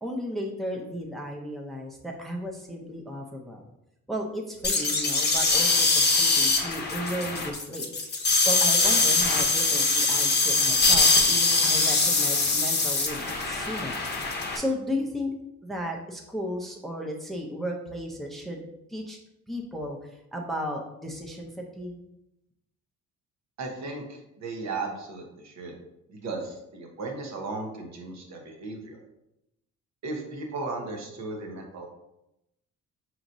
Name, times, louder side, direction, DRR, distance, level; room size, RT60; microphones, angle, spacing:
voice 1, 0.0-3.6 4.1-7.9 8.5-14.0 14.5-15.3 15.6-18.6 18.9-19.2 19.5-22.0, equal, ahead, 0 dB, 0.6 m, -34 dB
sound 1, 4.6-14.6, left 3 dB, 35° left, 0.8 m, -23 dB
voice 2, 23.6-25.7 26.1-29.0 30.0-31.9, right 3 dB, 65° right, 1 dB, 1.0 m, -36 dB
4.9 x 3.0 x 2.6 m, 0.87 s
cardioid pair, 90°, 30 cm